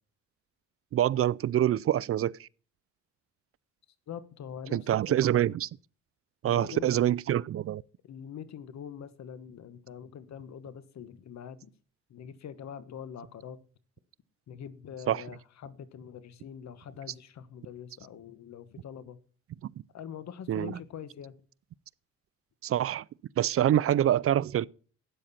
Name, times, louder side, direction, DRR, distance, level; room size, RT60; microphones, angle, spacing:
voice 1, 0.9-2.5 4.7-5.7 6.4-7.8 15.1-15.3 17.1-17.2 20.5-20.8 22.6-23.0 23.4-24.7, right 11 dB, 50° right, 0.5 m, -26 dB
voice 2, 4.1-5.0 6.4-7.2 8.0-11.7 12.1-13.6 14.5-19.2 19.9-21.3, left 8 dB, 65° left, 1.3 m, -44 dB
12.5 x 9.0 x 4.2 m
cardioid pair, 90°, 30 cm